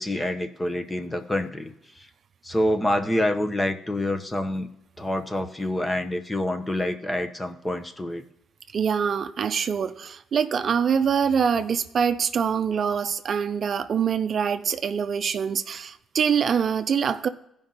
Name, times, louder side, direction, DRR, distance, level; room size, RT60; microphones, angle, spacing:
voice 1, 0.0-2.1 2.4-4.7 5.0-8.2, left 1 dB, 15° left, 7 dB, 0.9 m, -27 dB
voice 2, 8.7-17.3, right 7 dB, 55° right, 10 dB, 0.5 m, -24 dB
16.0 x 5.3 x 4.0 m, 0.80 s
cardioid pair, 90°, 0 cm